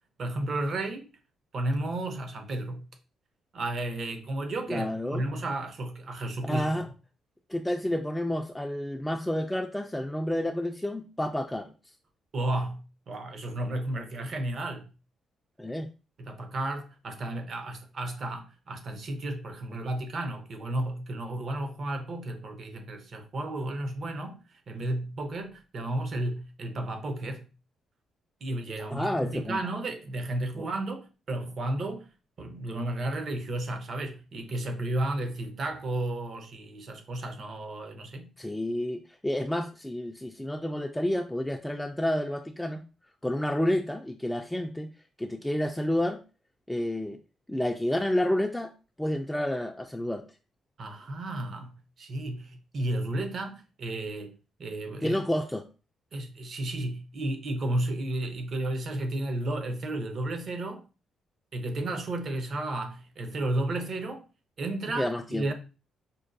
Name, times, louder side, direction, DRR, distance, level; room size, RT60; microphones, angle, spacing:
voice 1, 0.2-1.1 1.5-2.9 3.5-6.8 12.3-14.9 16.2-27.5 28.4-32.1 32.4-38.3 50.8-54.3 54.6-55.2 56.1-60.8 61.5-64.3 64.6-65.5, right 1 dB, 50° right, 0.7 m, -33 dB
voice 2, 4.7-5.2 6.4-6.9 7.5-11.7 15.6-15.9 28.8-29.6 30.6-30.7 38.4-42.8 43.2-44.9 45.2-46.2 46.7-47.2 47.5-48.7 49.0-50.2 55.0-55.6 65.0-65.5, left 1 dB, 5° left, 0.3 m, -30 dB
5.3 x 2.2 x 2.5 m
cardioid pair, 90°, 0 cm